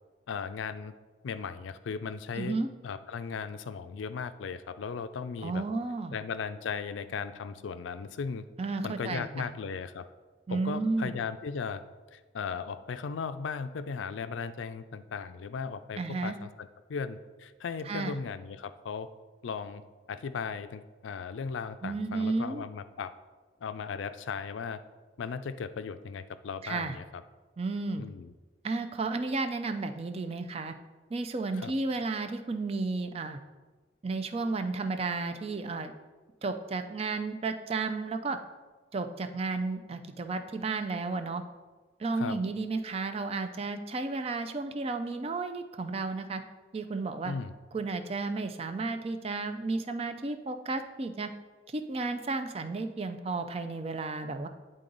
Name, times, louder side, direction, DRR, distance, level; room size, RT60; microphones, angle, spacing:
voice 1, 0.3-0.9 1.2-2.6 2.8-5.6 6.1-8.4 8.8-10.1 10.5-11.8 12.1-19.1 19.4-19.8 20.1-23.1 23.6-24.8 25.2-27.0 28.0-28.3 31.6-31.7 42.1-42.4 47.2-47.5, left 5 dB, 85° left, 12 dB, 0.4 m, -37 dB
voice 2, 2.3-2.7 5.4-6.2 8.6-9.5 10.5-11.2 16.0-16.4 17.8-18.2 21.8-22.7 26.6-27.0 27.6-28.0 28.6-30.7 31.1-33.4 34.0-35.9 36.4-38.4 38.9-41.4 42.0-46.4 46.7-47.3 47.7-51.3 51.7-54.5, right 3 dB, 30° right, 8 dB, 0.4 m, -33 dB
9.9 x 3.8 x 3.9 m, 1.3 s
head